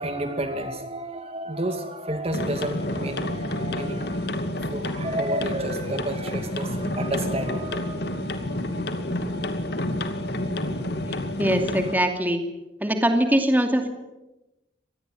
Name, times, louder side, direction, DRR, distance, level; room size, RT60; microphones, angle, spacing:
voice 1, 0.0-8.6, right 1 dB, 30° right, 7 dB, 2.3 m, -31 dB
sound 1, 2.3-11.9, left 1 dB, 55° left, 2.5 m, -29 dB
voice 2, 11.4-12.4 12.8-13.9, right 1 dB, 10° right, 5 dB, 2.6 m, -22 dB
25.5 x 20.0 x 9.2 m, 1.0 s
head